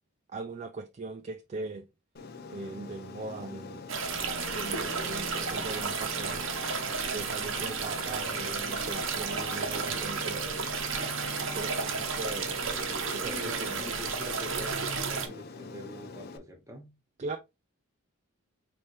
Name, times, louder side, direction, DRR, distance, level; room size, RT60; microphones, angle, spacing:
voice 1, 0.3-1.9 2.5-3.8 4.5-6.6 7.1-10.5 11.4-12.5 13.1-13.9 17.2-17.4, right 3 dB, 30° right, 0.3 m, -40 dB
Aircraft, 2.2-16.4, left 4 dB, 45° left, 0.5 m, -44 dB
sound 1, 3.9-15.3, right 5 dB, 65° right, 0.9 m, -32 dB
voice 2, 13.1-16.9, left 1 dB, 15° right, 1.2 m, -44 dB
4.2 x 3.2 x 3.1 m
head